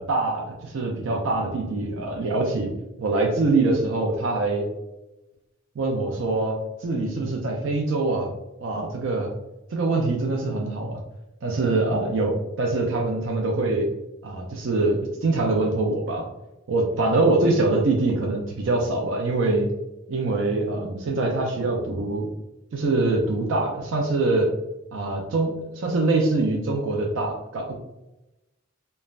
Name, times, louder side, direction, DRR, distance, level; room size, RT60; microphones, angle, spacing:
voice 1, 0.0-2.7 3.0-4.7 5.8-6.5 6.8-8.3 8.6-9.3 9.7-11.0 11.4-13.9 14.2-16.2 16.7-19.7 20.1-22.3 22.7-24.5 24.9-27.8, right 2 dB, 70° right, 0 dB, 0.4 m, -24 dB
3.1 x 2.1 x 2.4 m, 0.96 s
head